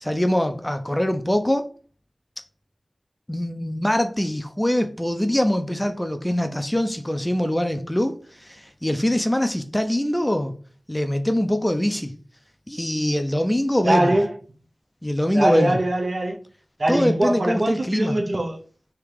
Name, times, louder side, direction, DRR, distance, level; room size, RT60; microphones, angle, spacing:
voice 1, 0.0-1.7 3.3-10.5 10.9-12.1 12.7-14.2 15.0-15.8 16.9-18.2, left 1 dB, 10° left, 0.5 m, -23 dB
voice 2, 13.8-14.3 15.3-16.4 16.8-18.6, right 1 dB, 55° right, 0.8 m, -22 dB
3.5 x 2.9 x 4.7 m
wide cardioid pair, 65°, 0 cm